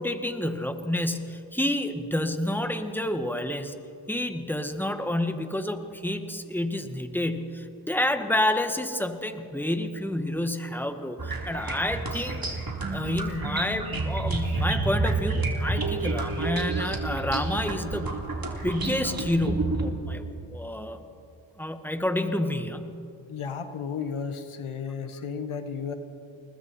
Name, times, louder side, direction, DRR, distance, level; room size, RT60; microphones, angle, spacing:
voice 1, 0.0-3.7 4.1-12.4 12.9-18.2 18.6-21.0 21.6-23.0, left 1 dB, 5° left, 7 dB, 1.8 m, -29 dB
sound 1, 11.2-19.9, right 3 dB, 45° right, 3.5 m, -29 dB
voice 2, 23.3-25.9, left 6 dB, 85° left, 8 dB, 1.5 m, -33 dB
29.0 x 20.5 x 4.4 m, 2.7 s
cardioid pair, 45°, 49 cm